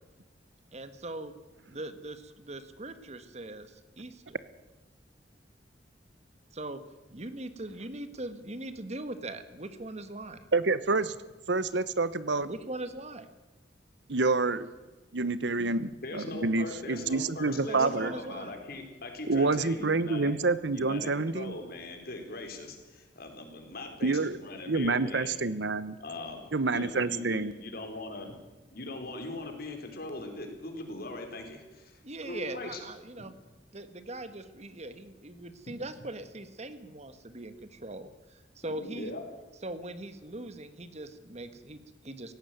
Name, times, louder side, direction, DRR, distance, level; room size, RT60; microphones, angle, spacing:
voice 1, 0.7-1.3 1.7-4.4 6.5-6.8 7.1-10.5 12.4-13.3 17.7-18.6 32.0-33.3 33.7-39.1 39.6-42.3, right 2 dB, 40° right, 11 dB, 1.5 m, -40 dB
voice 2, 10.5-11.2 11.5-12.5 14.1-14.7 15.1-18.1 19.3-21.5 24.0-24.4 24.7-26.0 26.5-27.5, right 3 dB, 70° right, 16 dB, 1.0 m, -28 dB
voice 3, 16.0-20.3 20.7-25.3 26.0-28.3 28.7-32.8 33.2-33.3 38.7-39.2, left 2 dB, 55° left, 4 dB, 4.2 m, -40 dB
17.5 x 16.0 x 9.3 m, 1.2 s
head